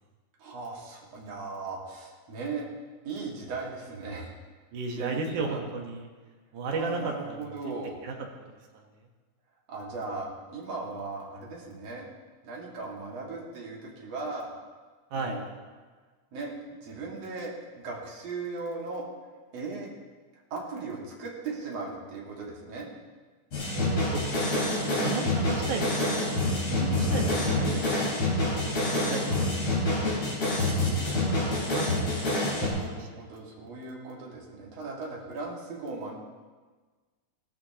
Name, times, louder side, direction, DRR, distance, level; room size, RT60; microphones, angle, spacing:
voice 1, 0.4-2.7 3.0-4.3 5.0-5.6 6.7-8.0 9.7-12.1 12.4-14.5 15.1-15.4 16.3-16.5 16.8-19.0 19.5-19.9 20.5-22.9 28.9-29.5 31.1-31.2 32.6-36.1, right 3 dB, 50° right, -3 dB, 3.1 m, -38 dB
voice 2, 4.7-6.1 6.5-7.4 8.0-8.1 8.7-8.8 15.1-15.4 23.7-28.2 28.6-30.3 30.8-31.9 32.5-32.7 33.0-33.1, right 4 dB, 70° right, 1 dB, 2.7 m, -35 dB
sound 1, 23.5-32.7, left 2 dB, 40° left, 4.7 m, -27 dB
17.0 x 13.5 x 3.0 m, 1.4 s
omnidirectional pair, 3.9 m